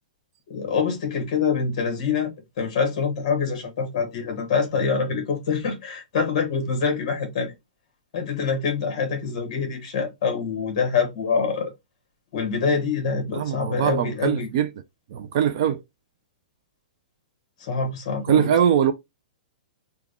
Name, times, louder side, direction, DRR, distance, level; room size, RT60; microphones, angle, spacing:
voice 1, 0.5-7.5 8.1-11.7 12.3-14.5 17.6-18.5, left 5 dB, 40° left, 1.3 m, -25 dB
voice 2, 13.3-14.7 15.1-15.8 18.3-18.9, right 9 dB, 35° right, 0.3 m, -21 dB
3.5 x 2.2 x 3.3 m
hypercardioid pair, 175°, 4 cm